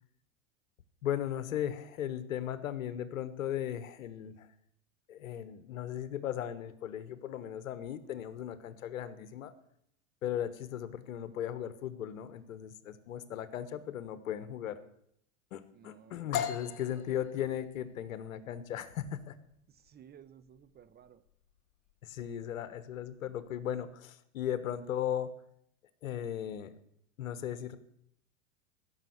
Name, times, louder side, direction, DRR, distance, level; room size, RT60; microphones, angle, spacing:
voice 1, 1.0-4.5 5.1-9.5 10.2-14.8 15.5-19.4 22.0-25.3 26.0-26.8 27.2-27.8, left 10 dB, 80° left, 13 dB, 1.3 m, -37 dB
voice 2, 15.7-17.1 19.7-21.2, right 8 dB, 25° right, 13 dB, 0.8 m, -57 dB
sound 1, 16.3-24.0, left 9 dB, 55° left, 1.4 m, -42 dB
15.0 x 6.5 x 8.1 m, 0.74 s
hypercardioid pair, 105°, 40 cm